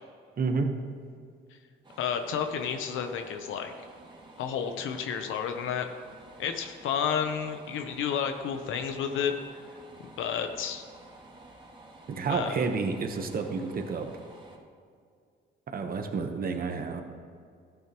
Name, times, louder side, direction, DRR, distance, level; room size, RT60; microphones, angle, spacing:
voice 1, 0.4-0.7 12.1-14.1 15.7-17.0, right 4 dB, 45° right, 5 dB, 1.1 m, -30 dB
sound 1, 1.8-14.6, right 2 dB, 25° right, 1.8 m, -52 dB
voice 2, 2.0-3.7 4.4-5.9 6.4-9.4 10.2-10.8 12.3-12.6, left 7 dB, 85° left, 6 dB, 0.8 m, -31 dB
13.5 x 9.1 x 3.0 m, 2.2 s
cardioid pair, 90°, 20 cm